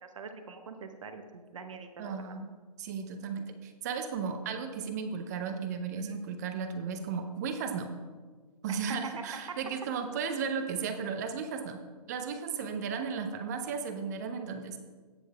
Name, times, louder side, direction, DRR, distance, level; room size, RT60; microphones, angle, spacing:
voice 1, 0.0-2.3 6.0-6.2 8.7-8.8 9.0-9.1 9.5-9.6, right 5 dB, 50° right, 7 dB, 0.9 m, -44 dB
voice 2, 2.0-7.9 8.6-11.8 12.1-14.8, right 6 dB, 25° right, 7 dB, 0.6 m, -35 dB
18.0 x 6.3 x 2.4 m, 1.5 s
figure-of-eight pair, 130°, 20 cm